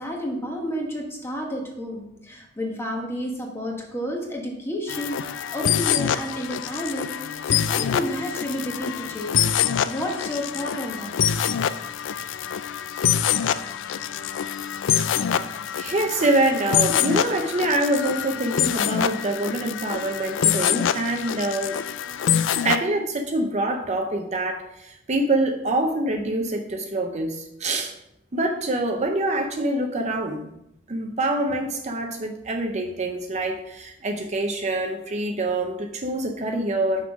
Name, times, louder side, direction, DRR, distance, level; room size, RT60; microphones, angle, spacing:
voice 1, 0.0-9.4 9.9-11.1, equal, 15° left, 0 dB, 1.3 m, -31 dB
sound 1, 4.9-22.8, left 9 dB, 70° left, 0.3 m, -25 dB
voice 2, 15.8-21.8 22.6-27.9 28.3-30.5 30.9-37.1, right 2 dB, 35° right, 3 dB, 0.6 m, -25 dB
6.1 x 5.4 x 4.8 m, 0.82 s
head